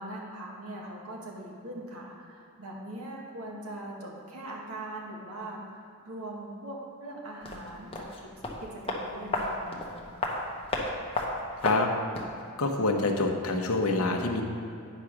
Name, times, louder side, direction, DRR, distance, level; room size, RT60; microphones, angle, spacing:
voice 1, 0.0-8.3 8.6-9.8, right 1 dB, 75° right, -2 dB, 1.7 m, -41 dB
sound 1, 7.4-12.4 12.7-12.8, left 2 dB, 25° left, 1.0 m, -34 dB
voice 2, 12.6-14.4, left 3 dB, 75° left, 2 dB, 1.0 m, -26 dB
9.1 x 5.0 x 5.9 m, 2.5 s
head